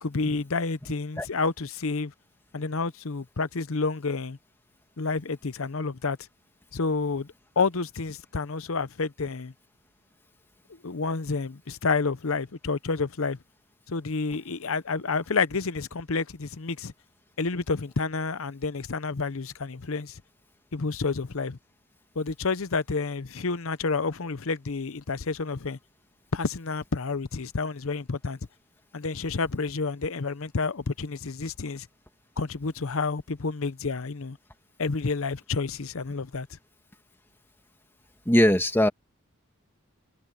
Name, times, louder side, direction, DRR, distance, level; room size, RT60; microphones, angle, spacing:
voice 1, 0.0-2.1 2.5-4.4 5.0-6.2 6.7-9.5 10.8-13.4 13.9-16.9 17.4-20.2 20.7-21.6 22.2-25.8 26.3-28.4 28.9-31.9 32.4-34.4 34.8-36.5, left 4 dB, 65° left, 0.8 m, -29 dB
voice 2, 38.3-38.9, left 1 dB, 10° left, 2.1 m, -20 dB
head